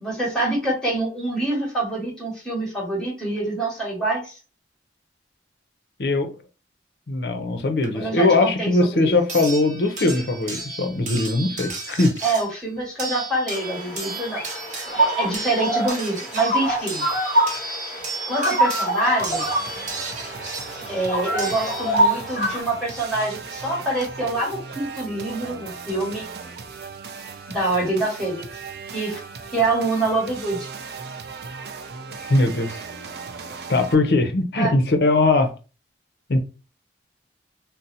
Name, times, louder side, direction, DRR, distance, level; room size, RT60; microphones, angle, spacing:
voice 1, 0.0-4.4 7.9-9.1 12.2-14.6 14.9-17.1 18.3-19.5 20.9-26.3 27.5-28.6 28.9-29.2 29.5-30.7 32.2-32.3 34.5-34.7, right 2 dB, 5° left, 1.3 m, -26 dB
voice 2, 7.1-12.1 32.3-32.8 33.7-35.5 36.3-36.4, left 2 dB, 60° left, 0.6 m, -20 dB
sound 1, 7.8-7.9 9.3-22.3 23.6-23.7 24.0-24.1, right 3 dB, 40° right, 0.8 m, -34 dB
sound 2, 13.5-22.6, right 1 dB, 40° left, 0.9 m, -25 dB
sound 3, 19.2-33.9, right 5 dB, 60° right, 0.4 m, -37 dB
2.6 x 2.1 x 3.9 m
head